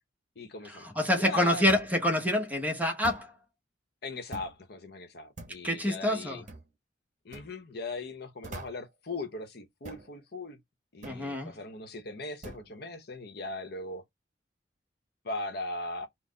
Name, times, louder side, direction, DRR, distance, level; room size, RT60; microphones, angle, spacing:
voice 1, 0.4-1.7 4.0-6.4 7.2-10.6 10.9-14.0 15.2-16.1, left 2 dB, 55° left, 0.8 m, -39 dB
voice 2, 1.0-3.3 5.6-6.4 11.0-11.5, left 1 dB, 10° right, 0.8 m, -26 dB
sound 1, 1.7-2.0 3.0-3.3 4.3-4.6 5.4-5.7 6.5-6.7 7.3-7.5 8.4-8.9 9.9-10.1 11.0-11.3 12.4-12.7, right 2 dB, 40° right, 0.9 m, -44 dB
4.1 x 2.0 x 3.7 m
head